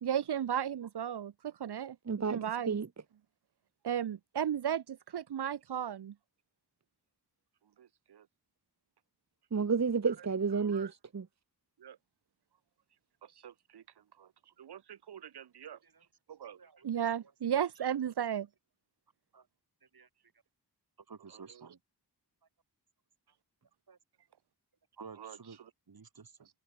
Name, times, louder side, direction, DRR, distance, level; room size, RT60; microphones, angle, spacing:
voice 1, 0.0-2.0 2.3-2.8 3.8-6.1 7.8-8.2 10.1-10.2 10.6-10.9 11.8-12.0 13.3-13.8 14.2-14.3 14.6-15.8 16.3-16.6 16.8-18.5 25.2-25.3, right 9 dB, 85° right, 1.0 m, -35 dB
voice 2, 2.1-2.4 2.7-2.9 9.5-11.3, right 5 dB, 45° right, 1.4 m, -31 dB
voice 3, 15.7-16.1 16.5-16.9 17.2-17.3 17.7-17.9 19.3-19.5 19.8-20.1 21.0-21.8 23.9-24.0 25.0-25.6 25.9-26.5, right 5 dB, 65° right, 7.9 m, -53 dB
wide cardioid pair, 95°, 39 cm